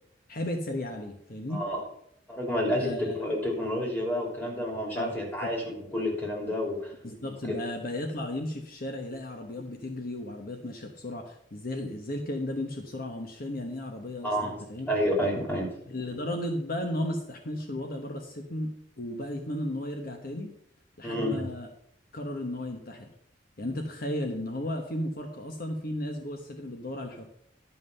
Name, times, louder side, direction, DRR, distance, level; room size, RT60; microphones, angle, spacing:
voice 1, 0.3-1.6 2.8-3.1 5.0-5.1 5.4-5.5 7.0-14.9 15.9-18.7 19.0-20.5 21.0-21.7 22.1-23.1 23.6-27.2, left 1 dB, 50° left, 4 dB, 1.1 m, -34 dB
voice 2, 1.5-1.8 2.3-6.9 7.4-7.6 14.2-14.5 14.9-15.7 21.0-21.4, equal, 10° left, -1 dB, 3.1 m, -29 dB
11.5 x 5.5 x 6.6 m, 0.73 s
head